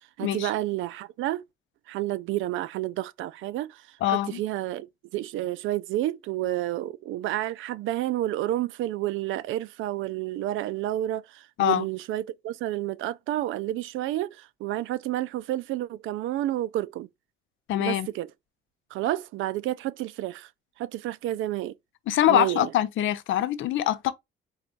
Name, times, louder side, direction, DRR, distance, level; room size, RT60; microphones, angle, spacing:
voice 1, 0.2-1.4 1.9-4.9 5.1-17.1 17.8-18.3 18.9-20.5 20.8-21.7 22.3-22.7, right 14 dB, 85° right, 0.4 m, -30 dB
voice 2, 4.0-4.4 11.6-11.9 17.7-18.1 22.1-24.1, left 12 dB, 80° left, 0.6 m, -24 dB
4.2 x 2.3 x 3.9 m
cardioid pair, 90°, 20 cm